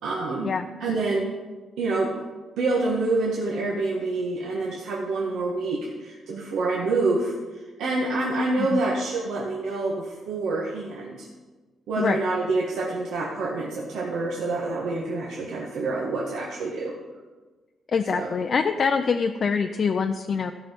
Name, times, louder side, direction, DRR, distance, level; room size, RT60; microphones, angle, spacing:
voice 1, 0.0-0.5 0.8-1.3 1.8-2.2 2.6-11.3 11.9-16.9 18.1-18.3, right 3 dB, 85° right, -4 dB, 1.7 m, -27 dB
voice 2, 17.9-20.5, left 5 dB, 45° left, 6 dB, 0.5 m, -24 dB
15.0 x 5.7 x 5.9 m, 1.3 s
cardioid pair, 130°, 0 cm